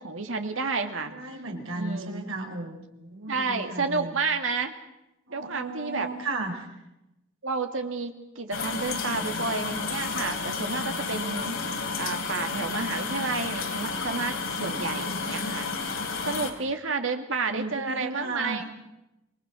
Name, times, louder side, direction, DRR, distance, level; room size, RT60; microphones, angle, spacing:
voice 1, 0.0-1.2 1.7-2.2 3.3-4.7 5.3-6.1 7.4-11.6 12.0-15.7 16.2-18.6, right 4 dB, 70° right, 6 dB, 2.3 m, -30 dB
voice 2, 1.0-4.1 5.3-6.7 17.5-18.6, right 2 dB, 90° right, 3 dB, 4.7 m, -35 dB
sound 1, 8.5-16.5, left 4 dB, 85° left, 3.5 m, -31 dB
26.5 x 21.5 x 6.3 m, 0.91 s
head